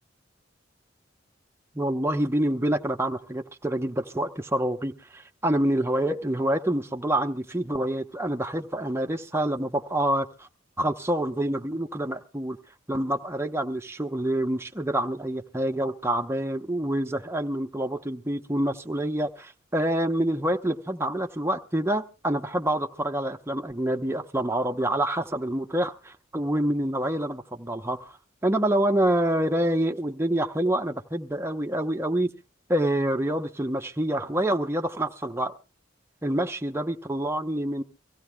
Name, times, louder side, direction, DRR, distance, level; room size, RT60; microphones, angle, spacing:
voice 1, 1.7-10.5 10.8-12.6 12.9-28.1 28.4-32.3 32.7-35.5 36.2-37.8, right 1 dB, 15° right, 0.8 m, -27 dB
24.5 x 16.0 x 2.2 m
head